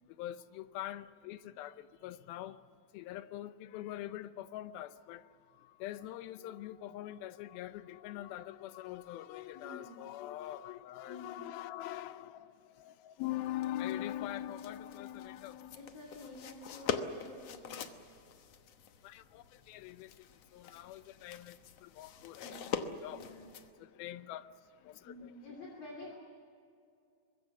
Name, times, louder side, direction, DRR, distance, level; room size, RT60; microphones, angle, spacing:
voice 1, 0.2-2.6 2.9-5.2 5.6-15.8 19.0-20.1 20.5-22.6 22.8-23.3 23.8-24.5 24.8-25.3, left 13 dB, 85° left, 2.6 m, -43 dB
voice 2, 9.5-10.1 11.1-11.4 15.7-17.8 22.4-22.8 23.1-23.5 25.0-26.2, left 2 dB, 45° left, 3.6 m, -50 dB
sound 1, 13.2-23.7, left 7 dB, 65° left, 1.6 m, -44 dB
24.0 x 21.5 x 7.2 m
omnidirectional pair, 4.2 m